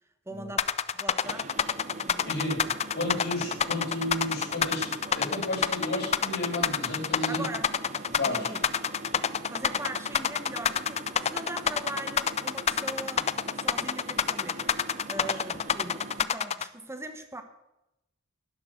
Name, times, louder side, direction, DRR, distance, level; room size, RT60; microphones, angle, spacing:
voice 1, 0.3-0.6 0.9-1.5 1.9-2.3 7.3-7.7 8.2-8.6 9.5-14.7 15.1-17.4, right 2 dB, 15° right, 8 dB, 1.2 m, -40 dB
sound 1, 0.6-16.6, left 8 dB, 30° left, 0.4 m, -27 dB
sound 2, 1.2-16.2, right 3 dB, 35° right, 0.7 m, -43 dB
voice 2, 2.3-2.6 2.9-7.5 8.2-8.5 15.2-15.3, left 1 dB, 55° left, -8 dB, 5.4 m, -32 dB
11.5 x 10.5 x 6.3 m, 0.90 s
head